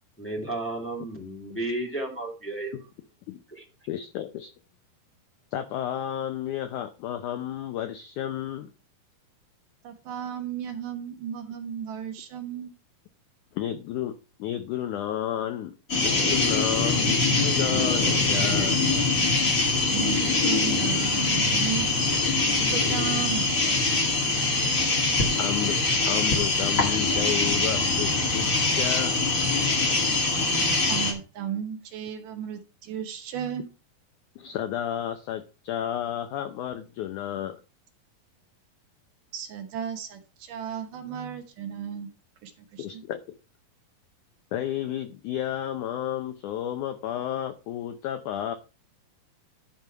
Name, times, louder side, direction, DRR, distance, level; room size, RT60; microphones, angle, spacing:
voice 1, 0.2-2.7 3.5-3.6, right 2 dB, 5° left, -1 dB, 1.5 m, -33 dB
voice 2, 3.9-4.5 5.5-8.7 13.5-15.7 16.0-18.8 24.6-25.8 26.1-29.1 34.4-37.6 42.8-43.2 44.5-48.6, left 11 dB, 80° left, 9 dB, 1.8 m, -32 dB
voice 3, 9.8-12.7 19.9-23.8 30.9-33.7 39.3-42.1 42.4-43.0, right 8 dB, 70° right, 6 dB, 2.6 m, -35 dB
sound 1, 15.9-31.1, left 3 dB, 30° left, 1.6 m, -23 dB
12.0 x 5.3 x 4.6 m, 0.33 s
omnidirectional pair, 4.3 m